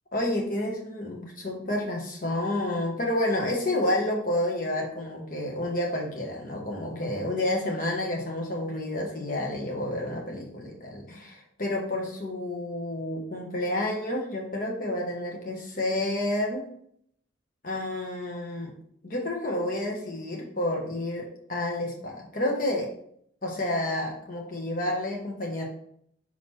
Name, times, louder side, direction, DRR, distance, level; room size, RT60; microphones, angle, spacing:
voice 1, 0.1-16.7 17.6-18.7 19.0-22.9 23.4-25.6, left 1 dB, 45° left, -1 dB, 1.4 m, -30 dB
5.9 x 4.2 x 4.5 m, 0.66 s
head